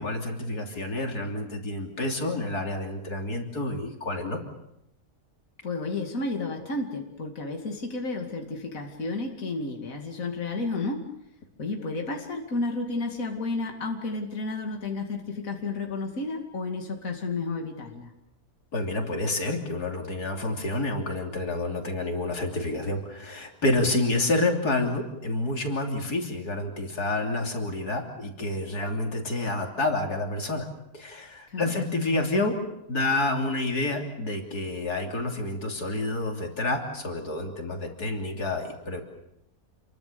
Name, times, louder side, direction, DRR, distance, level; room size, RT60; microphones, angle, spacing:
voice 1, 0.0-4.4 18.7-30.7 30.9-32.6 32.9-39.0, left 2 dB, 90° left, 3 dB, 3.7 m, -29 dB
voice 2, 5.6-11.1 11.6-18.1 31.5-31.8, left 3 dB, 60° left, 2 dB, 2.9 m, -32 dB
28.5 x 23.0 x 6.9 m, 0.84 s
omnidirectional pair, 1.6 m